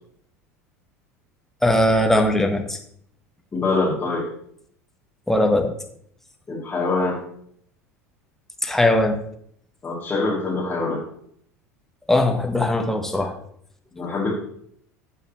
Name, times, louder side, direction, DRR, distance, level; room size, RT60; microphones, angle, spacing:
voice 1, 1.6-2.8 5.3-5.7 8.6-9.2 12.1-13.3, left 1 dB, 5° left, 4 dB, 1.2 m, -19 dB
voice 2, 3.5-4.3 6.5-7.2 9.8-11.0 13.9-14.3, left 3 dB, 20° left, -9 dB, 3.0 m, -24 dB
15.5 x 5.7 x 3.1 m, 0.66 s
figure-of-eight pair, 75°, 8 cm